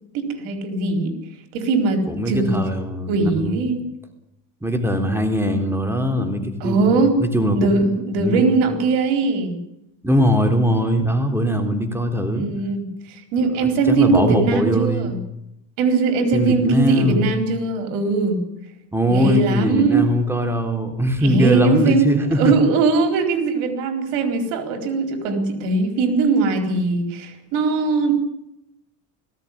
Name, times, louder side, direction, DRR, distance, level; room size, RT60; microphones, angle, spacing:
voice 1, 0.1-1.1 1.5-2.6 3.1-3.8 6.6-7.2 7.5-9.6 12.3-15.2 15.8-18.4 19.1-20.1 21.2-28.1, right 4 dB, 80° right, 6 dB, 4.4 m, -20 dB
voice 2, 2.1-3.6 4.6-7.8 8.2-8.4 10.0-12.5 13.6-15.1 16.3-17.3 18.9-22.5, equal, 5° right, 5 dB, 3.5 m, -21 dB
19.0 x 16.0 x 10.0 m, 0.84 s
supercardioid pair, 105°, 48 cm